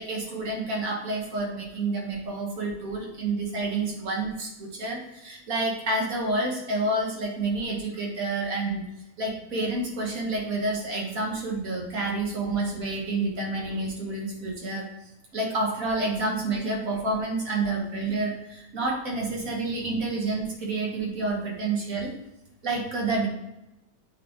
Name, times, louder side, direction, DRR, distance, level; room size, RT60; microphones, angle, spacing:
voice 1, 0.0-8.8 9.2-14.9 15.3-22.1 22.6-23.3, right 2 dB, 55° right, -1 dB, 2.0 m, -29 dB
8.4 x 4.1 x 3.7 m, 0.88 s
omnidirectional pair, 1.8 m